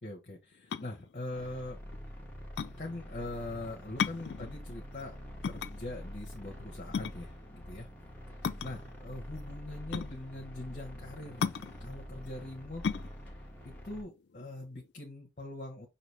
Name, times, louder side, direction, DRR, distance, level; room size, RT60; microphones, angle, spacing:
voice 1, 0.0-1.8 2.8-5.2 5.4-7.9 8.3-11.5 11.8-12.8 13.6-15.9, left 2 dB, 45° left, 0 dB, 1.0 m, -42 dB
sound 1, 0.5-14.9, left 6 dB, 80° left, 0.4 m, -37 dB
sound 2, 1.3-14.0, equal, 10° left, 1.1 m, -46 dB
5.8 x 2.7 x 3.2 m, 0.23 s
head